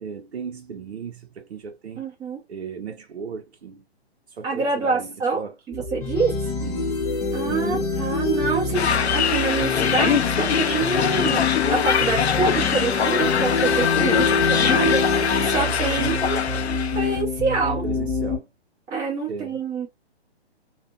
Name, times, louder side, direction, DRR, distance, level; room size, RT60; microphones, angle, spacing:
voice 1, 0.0-2.0 2.5-3.8 4.3-5.6 6.6-7.0 7.4-8.0 14.2-14.6 15.6-16.2 17.8-18.5 19.3-19.6, right 6 dB, 80° right, 0.5 m, -36 dB
voice 2, 2.0-2.4 4.4-6.4 7.3-11.4 11.7-16.4 16.9-17.8 18.9-19.9, right 4 dB, 10° right, 0.6 m, -26 dB
sound 1, 5.7-18.4, left 3 dB, 15° left, 1.0 m, -29 dB
sound 2, 6.0-15.6, left 5 dB, 40° left, 0.7 m, -26 dB
sound 3, 8.7-17.2, left 8 dB, 80° left, 0.5 m, -23 dB
2.5 x 2.1 x 2.3 m
figure-of-eight pair, 130°, 32 cm